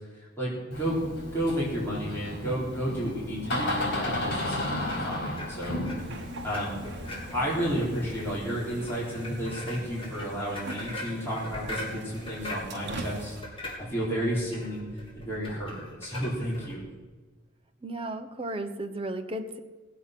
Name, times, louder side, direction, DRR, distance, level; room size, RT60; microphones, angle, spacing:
voice 1, 0.1-1.0 1.3-5.8 6.4-6.8 7.3-13.3 13.8-14.9 15.1-16.8, equal, 15° left, -8 dB, 4.1 m, -32 dB
Door, 0.7-8.4, left 1 dB, 60° left, 4.4 m, -34 dB
sound 1, 4.8-16.7, left 1 dB, 30° left, 3.9 m, -41 dB
sound 2, 6.0-13.4, right 2 dB, 60° right, 1.3 m, -43 dB
voice 2, 17.8-19.6, right 1 dB, 30° right, 6 dB, 1.1 m, -34 dB
18.5 x 8.3 x 6.1 m, 1.3 s
head